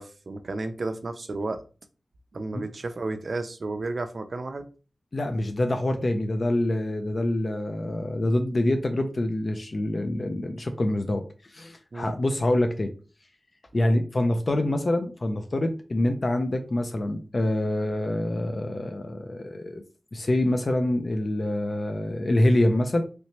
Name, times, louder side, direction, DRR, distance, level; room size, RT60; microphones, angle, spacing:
voice 1, 0.0-1.6 2.3-4.7 11.9-12.1 13.7-14.0, right 2 dB, 55° right, 0.4 m, -32 dB
voice 2, 5.1-12.9 13.7-19.8 20.1-23.0, left 1 dB, 45° left, 0.4 m, -26 dB
3.2 x 2.8 x 2.9 m
wide cardioid pair, 100°, 0 cm